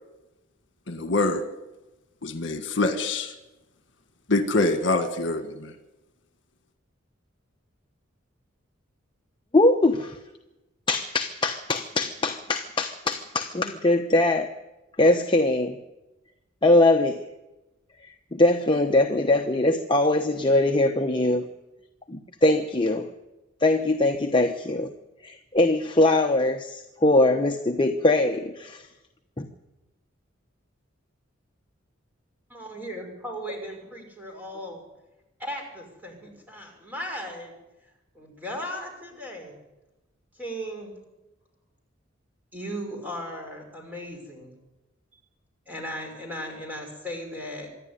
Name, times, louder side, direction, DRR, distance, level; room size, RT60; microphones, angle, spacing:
voice 1, 0.9-1.4 2.2-3.3 4.3-5.7, left 2 dB, 60° left, 7 dB, 1.7 m, -25 dB
voice 2, 9.5-10.2 10.9-14.5 15.0-15.8 16.6-17.3 18.0-21.4 22.1-23.1 23.6-24.9 25.2-28.9 29.4-29.5, left 2 dB, 25° left, 4 dB, 0.9 m, -22 dB
voice 3, 32.5-34.8 35.4-37.6 38.1-39.6 40.3-41.0 42.5-44.5 45.7-47.7, equal, 10° right, 2 dB, 5.8 m, -36 dB
25.5 x 11.5 x 9.8 m, 1.0 s
head